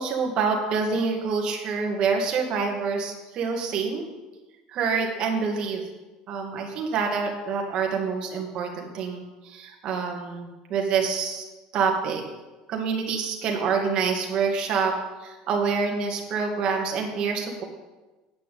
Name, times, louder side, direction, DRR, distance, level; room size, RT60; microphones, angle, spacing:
voice 1, 0.0-4.0 4.7-5.8 6.3-11.4 11.7-12.2 12.7-14.9 15.2-17.6, right 5 dB, 40° right, 1 dB, 2.0 m, -26 dB
9.3 x 6.0 x 8.4 m, 1.1 s
cardioid pair, 165°, 2 cm